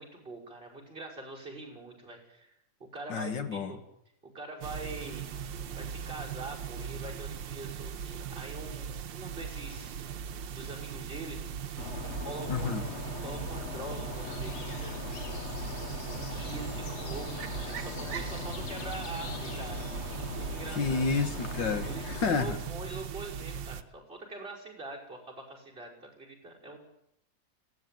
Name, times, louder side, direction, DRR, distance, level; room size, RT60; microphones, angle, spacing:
voice 1, 0.0-2.5 2.8-3.8 4.3-5.3 5.7-10.0 10.6-11.4 12.0-12.8 13.2-15.0 16.3-19.9 20.2-21.1 21.8-26.8, right 2 dB, 30° right, -3 dB, 5.9 m, -44 dB
voice 2, 3.1-3.7 12.5-12.8 20.8-22.6, left 5 dB, 75° left, 8 dB, 2.2 m, -30 dB
sound 1, 4.6-23.8, right 7 dB, 80° right, 1.7 m, -39 dB
sound 2, 11.8-22.4, left 5 dB, 45° left, 1.2 m, -40 dB
19.0 x 17.0 x 9.2 m, 0.77 s
omnidirectional pair, 2.0 m